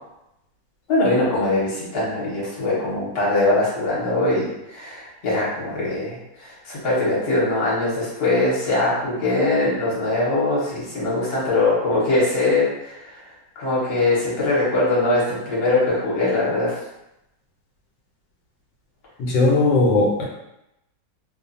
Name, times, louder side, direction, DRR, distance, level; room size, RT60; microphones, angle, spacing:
voice 1, 0.9-13.2 13.5-16.8, left 2 dB, 40° left, -7 dB, 1.1 m, -22 dB
voice 2, 19.2-20.2, left 2 dB, 80° left, -2 dB, 1.2 m, -18 dB
2.6 x 2.4 x 2.6 m, 0.87 s
omnidirectional pair, 1.9 m